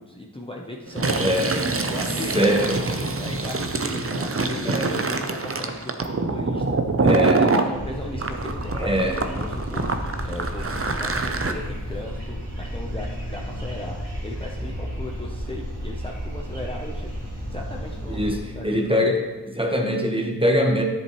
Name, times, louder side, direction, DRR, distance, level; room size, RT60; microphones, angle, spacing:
voice 1, 0.0-1.6 1.9-2.4 2.9-6.8 7.4-9.1 9.3-9.9 10.2-19.1, left 1 dB, 15° left, -1 dB, 0.8 m, -37 dB
Fill (with liquid), 0.9-7.7 8.2-11.5, right 3 dB, 35° right, 0.7 m, -25 dB
voice 2, 1.2-1.5 1.9-2.0 2.3-2.8 4.6-4.9 7.0-7.4 8.7-9.2 18.1-19.1 19.5-20.8, equal, 15° right, 1 dB, 1.2 m, -22 dB
sound 1, 7.7-18.4, equal, 85° right, 2.6 m, -32 dB
10.5 x 7.5 x 3.1 m, 1.2 s
wide cardioid pair, 45°, 39 cm